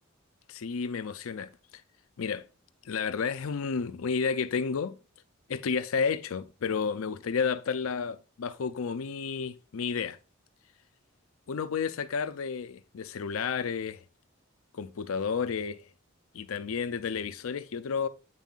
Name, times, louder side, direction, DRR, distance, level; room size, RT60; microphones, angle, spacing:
voice 1, 0.5-1.5 2.2-2.5 2.8-5.0 5.5-10.2 11.5-14.0 14.7-15.8 16.3-18.1, left 5 dB, 90° left, 0.5 m, -31 dB
8.2 x 5.4 x 2.4 m
head